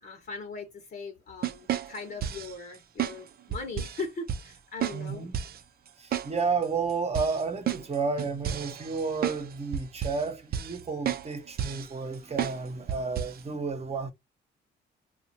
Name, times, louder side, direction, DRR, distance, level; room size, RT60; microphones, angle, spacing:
voice 1, 0.0-5.2, left 3 dB, 50° left, 1.0 m, -39 dB
sound 1, 1.4-2.5 3.0-3.2 3.5-4.0 4.3-4.4 4.8-5.0 5.3-5.6 6.1-6.3 6.6-6.7 7.1-9.4 9.7-10.2 10.5-10.8 11.1-11.3 11.6-11.9 12.4-12.6 12.9-13.4, right 9 dB, 50° right, 0.5 m, -31 dB
voice 2, 4.9-5.3 6.0-14.1, right 4 dB, 30° right, 0.9 m, -31 dB
2.8 x 2.4 x 2.7 m
cardioid pair, 90°, 20 cm